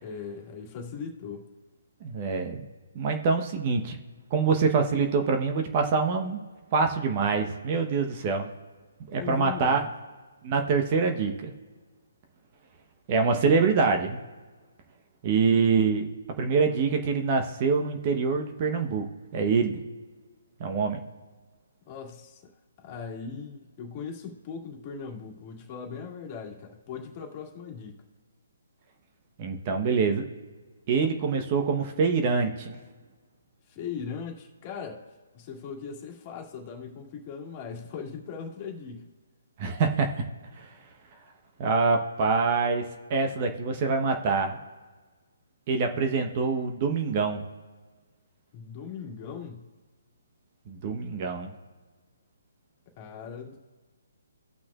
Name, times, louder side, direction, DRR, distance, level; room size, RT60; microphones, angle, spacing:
voice 1, 0.0-1.5 9.1-9.9 21.9-22.4 22.8-28.0 33.7-35.1 35.3-39.1 48.5-49.7 53.0-53.6, left 6 dB, 30° left, 1 dB, 2.1 m, -39 dB
voice 2, 2.0-2.7 2.9-4.0 4.3-6.4 6.7-8.5 9.1-9.8 10.4-11.5 13.1-14.2 15.2-16.1 16.4-19.1 19.3-19.8 20.6-21.0 29.4-30.2 30.9-32.8 39.6-40.1 40.6-40.7 41.6-44.6 45.7-47.4 50.7-51.5, right 5 dB, 35° right, 4 dB, 0.9 m, -25 dB
17.5 x 6.0 x 2.4 m, 1.4 s
hypercardioid pair, 145°, 0 cm